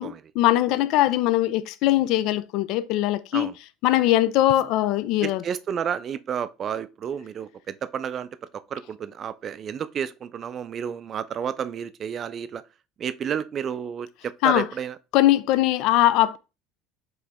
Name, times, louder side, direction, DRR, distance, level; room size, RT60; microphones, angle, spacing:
voice 1, 0.0-3.5 3.8-5.4 14.4-14.7 15.1-16.4, left 14 dB, 65° left, 0.4 m, -21 dB
voice 2, 5.2-8.3 8.7-12.6 13.0-15.0, right 8 dB, 35° right, 0.3 m, -31 dB
4.8 x 3.2 x 3.5 m
cardioid pair, 135°, 0 cm